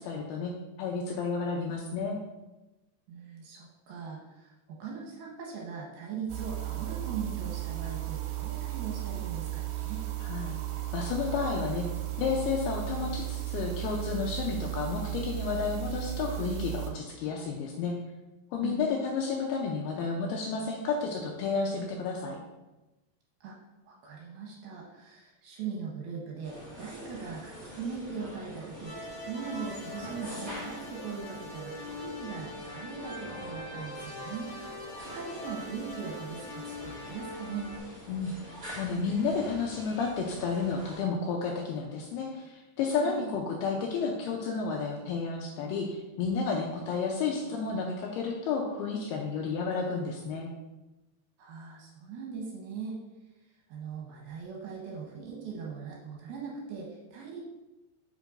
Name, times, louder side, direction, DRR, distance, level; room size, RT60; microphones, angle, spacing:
voice 1, 0.0-2.2 10.2-10.6 10.9-11.9 12.2-18.0 18.5-22.4 38.1-38.3 38.8-50.5, left 5 dB, 85° left, 0 dB, 2.3 m, -31 dB
voice 2, 3.1-10.0 18.6-18.8 23.4-23.6 23.8-34.7 35.1-37.7 43.0-43.3 51.4-53.0 53.7-57.4, right 5 dB, 75° right, -2 dB, 2.5 m, -40 dB
sound 1, 6.3-16.9, right 16 dB, 90° right, 2.9 m, -35 dB
sound 2, 26.4-41.0, equal, 35° right, 0.9 m, -45 dB
sound 3, 28.8-37.8, left 2 dB, 60° left, 3.3 m, -43 dB
8.1 x 5.3 x 2.5 m, 1.0 s
omnidirectional pair, 5.0 m